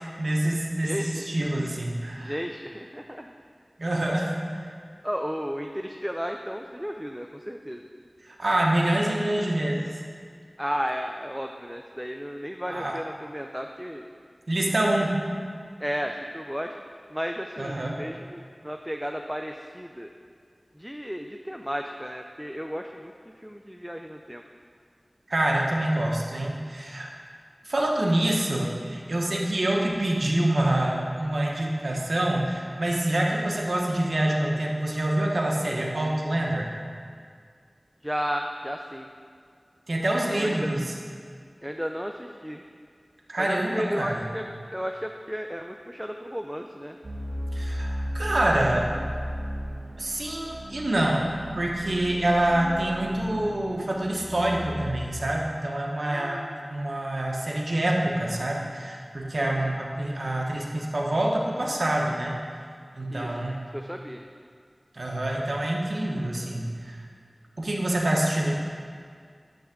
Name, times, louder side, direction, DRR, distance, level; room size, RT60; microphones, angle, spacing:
voice 1, 0.2-2.3 3.8-4.4 8.2-10.0 12.7-13.0 14.5-15.2 17.6-18.0 25.3-27.1 27.6-36.7 39.9-40.9 43.3-44.2 47.5-48.9 50.0-51.2 51.5-56.4 56.7-62.4 62.9-63.6 64.9-67.0 67.6-68.5, right 1 dB, 80° right, -2 dB, 1.1 m, -26 dB
voice 2, 0.8-1.6 2.2-3.3 5.0-7.8 10.6-14.1 15.8-16.7 17.1-20.1 20.7-24.4 38.0-39.1 40.3-40.7 41.6-42.6 43.4-47.0 56.0-56.6 59.4-59.6 63.1-63.4 63.7-64.2, equal, 5° right, 4 dB, 0.4 m, -34 dB
sound 1, 47.0-55.1, equal, 65° right, 1.1 m, -35 dB
10.5 x 3.5 x 6.5 m, 2.1 s
wide cardioid pair, 40°, 0 cm